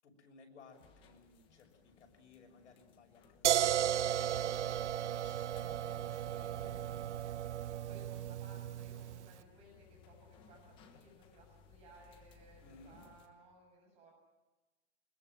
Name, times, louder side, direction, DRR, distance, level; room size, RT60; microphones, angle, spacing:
voice 1, 0.0-7.1 12.6-13.0, left 4 dB, 85° left, 3 dB, 6.4 m, -60 dB
sound 1, 0.7-13.3, left 5 dB, 15° left, 1.2 m, -63 dB
sound 2, 3.4-9.3, right 11 dB, 80° right, 0.8 m, -35 dB
voice 2, 6.2-6.6 7.1-7.4 7.8-14.1, right 1 dB, 20° right, 0 dB, 7.2 m, -61 dB
23.5 x 21.5 x 7.6 m, 1.1 s
hypercardioid pair, 175°, 34 cm